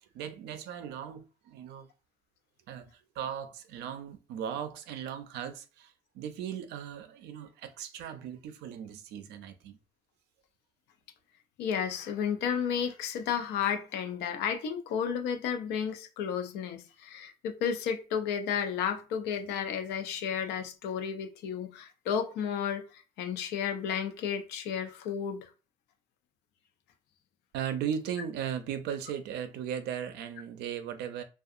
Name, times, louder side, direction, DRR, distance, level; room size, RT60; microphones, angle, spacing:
voice 1, 0.0-1.9 2.7-9.8 27.5-31.2, right 9 dB, 80° right, 0.5 m, -37 dB
voice 2, 11.6-25.5, left 7 dB, 90° left, 0.6 m, -32 dB
2.7 x 2.3 x 2.4 m
cardioid pair, 110°, 17 cm